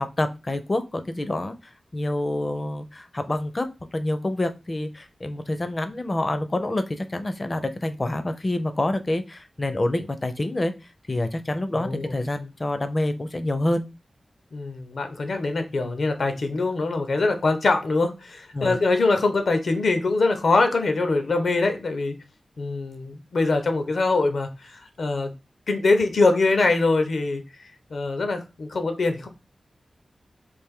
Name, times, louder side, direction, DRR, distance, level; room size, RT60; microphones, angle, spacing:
voice 1, 0.0-10.7 11.1-13.9 18.5-18.8, left 1 dB, 30° left, 9 dB, 0.4 m, -27 dB
voice 2, 11.7-12.1 14.5-22.2 22.6-25.3 25.7-27.4 27.9-29.3, left 3 dB, 75° left, 7 dB, 0.6 m, -23 dB
3.3 x 2.5 x 3.5 m, 0.27 s
wide cardioid pair, 115°, 0 cm